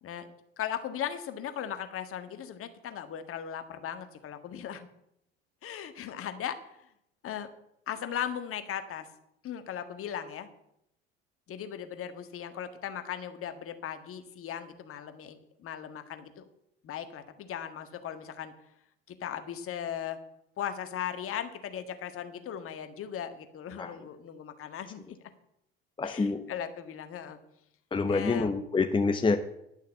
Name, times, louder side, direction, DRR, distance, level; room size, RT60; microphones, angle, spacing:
voice 1, 0.6-4.9 5.6-6.6 7.2-7.5 7.9-9.1 9.4-10.5 11.5-16.4 16.8-18.5 19.1-20.2 20.6-25.0 26.0-27.4 28.1-28.5, left 9 dB, 45° left, 9 dB, 1.6 m, -38 dB
voice 2, 26.0-26.4 27.9-29.4, left 4 dB, 15° left, 7 dB, 1.0 m, -27 dB
11.5 x 6.5 x 8.5 m, 0.78 s
hypercardioid pair, 70°, 30 cm